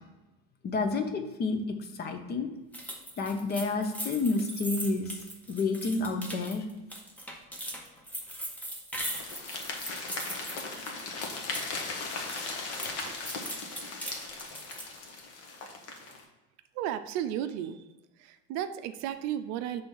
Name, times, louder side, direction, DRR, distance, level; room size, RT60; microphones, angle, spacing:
voice 1, 0.6-2.5 3.2-5.2 5.5-6.6, left 3 dB, 30° left, 7 dB, 0.7 m, -30 dB
sound 1, 2.7-11.8 12.1-15.0, equal, 5° left, 0.9 m, -40 dB
sound 2, 9.0-16.2, left 3 dB, 50° left, 1.2 m, -38 dB
voice 2, 12.9-13.4 15.0-15.1 16.0-16.1 16.7-17.9 18.2-19.8, right 10 dB, 60° right, 10 dB, 0.5 m, -35 dB
6.0 x 3.4 x 5.5 m, 1.1 s
cardioid pair, 130°, 31 cm